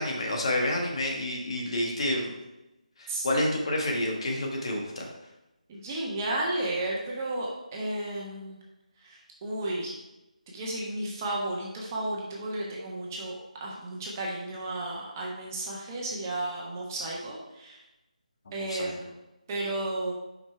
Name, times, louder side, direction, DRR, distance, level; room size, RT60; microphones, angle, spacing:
voice 1, 0.0-2.3 3.0-5.1 18.6-19.0, left 1 dB, 45° left, 0 dB, 1.3 m, -29 dB
voice 2, 5.7-8.6 9.0-9.9 10.5-17.8 18.5-19.1 19.5-20.1, right 1 dB, 20° right, -3 dB, 1.3 m, -33 dB
5.9 x 5.3 x 4.6 m, 0.97 s
figure-of-eight pair, 155°, 4 cm